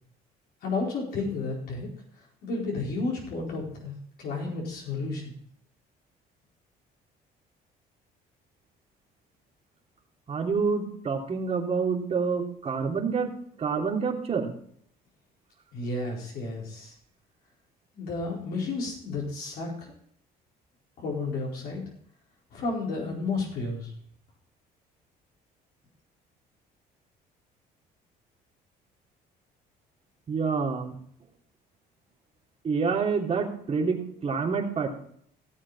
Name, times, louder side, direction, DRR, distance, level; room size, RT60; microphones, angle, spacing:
voice 1, 0.6-1.9 2.4-5.3 15.7-16.9 17.9-19.9 21.0-21.8 22.5-23.9, left 3 dB, 65° left, -3 dB, 4.6 m, -32 dB
voice 2, 10.3-13.3 13.6-14.5 30.3-31.0 32.6-34.9, right 5 dB, 40° right, 0 dB, 3.0 m, -27 dB
17.0 x 7.7 x 4.1 m, 0.65 s
cardioid pair, 110°, 17 cm